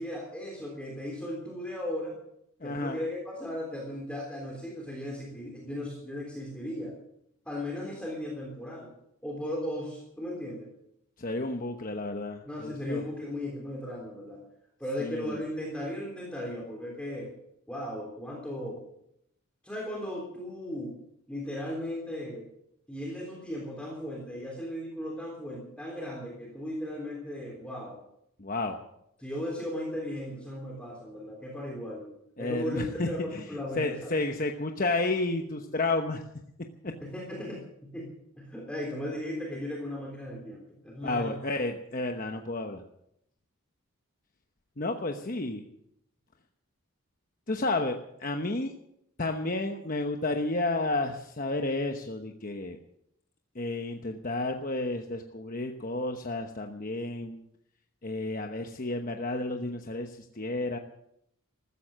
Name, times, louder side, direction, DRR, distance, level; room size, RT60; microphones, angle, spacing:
voice 1, 0.0-2.2 2.6-6.9 7.4-8.9 9.2-10.7 12.4-14.4 14.8-17.3 17.7-18.8 19.6-20.9 21.3-22.5 22.9-28.0 29.2-32.1 32.4-34.1 37.0-41.4, left 1 dB, 5° left, -2 dB, 3.4 m, -36 dB
voice 2, 2.6-3.0 11.2-13.0 15.0-15.4 28.4-28.8 32.4-33.4 33.8-36.2 36.8-36.9 41.0-42.8 44.8-45.6 47.5-47.9 48.2-48.7 49.2-52.8 53.5-57.4 58.0-60.8, left 2 dB, 40° left, 4 dB, 1.0 m, -31 dB
15.0 x 14.0 x 6.4 m, 0.76 s
head